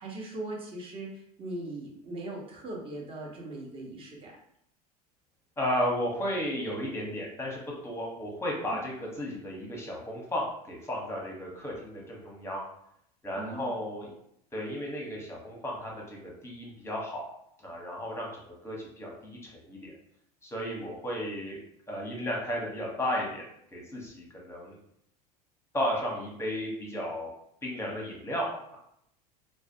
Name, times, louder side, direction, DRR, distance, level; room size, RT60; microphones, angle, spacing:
voice 1, 0.0-4.3 8.6-8.8 13.3-13.7, right 2 dB, 25° right, -2 dB, 0.8 m, -39 dB
voice 2, 5.6-12.6 13.2-14.1 14.5-17.2 17.6-19.9 20.4-21.6 21.9-24.8 25.7-27.3 27.6-28.8, equal, 10° left, -2 dB, 0.8 m, -34 dB
2.4 x 2.1 x 2.7 m, 0.73 s
figure-of-eight pair, 80°, 20 cm